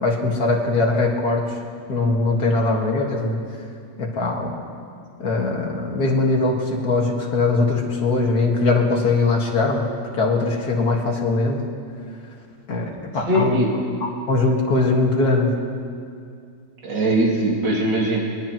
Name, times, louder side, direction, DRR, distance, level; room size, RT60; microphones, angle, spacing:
voice 1, 0.0-1.6 1.9-3.4 4.0-4.6 5.2-11.6 12.7-13.6 14.0-15.6, left 3 dB, 60° left, 0 dB, 2.4 m, -21 dB
voice 2, 13.3-13.7 16.8-18.2, right 1 dB, 85° right, -4 dB, 3.3 m, -20 dB
23.5 x 20.0 x 3.1 m, 2.3 s
omnidirectional pair, 1.9 m